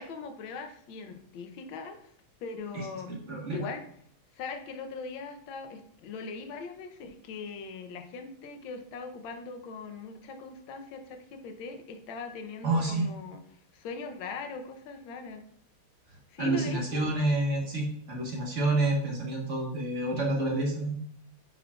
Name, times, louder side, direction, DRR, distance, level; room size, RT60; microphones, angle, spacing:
voice 1, 0.0-2.0 2.4-3.2 3.5-3.8 4.3-13.4 13.7-15.4 16.3-17.1, left 4 dB, 70° left, 5 dB, 1.5 m, -40 dB
voice 2, 2.7-3.6 12.6-13.1 16.4-21.0, right 2 dB, 40° right, -1 dB, 1.4 m, -29 dB
9.4 x 4.9 x 2.4 m, 0.64 s
omnidirectional pair, 2.4 m